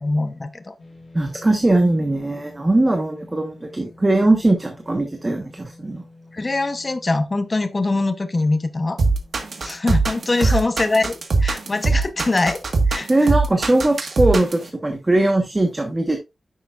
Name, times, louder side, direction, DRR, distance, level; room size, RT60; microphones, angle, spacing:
voice 1, 0.0-0.7 6.3-9.0 9.6-13.1, left 2 dB, 30° left, 0.8 m, -23 dB
sound 1, 0.8-15.2, left 2 dB, 45° left, 5.2 m, -49 dB
voice 2, 1.1-6.0 10.4-10.6 13.1-16.2, right 2 dB, 20° right, 1.1 m, -20 dB
sound 2, 9.0-14.7, right 3 dB, 60° right, 1.4 m, -20 dB
9.9 x 6.8 x 2.4 m
wide cardioid pair, 145°, 0 cm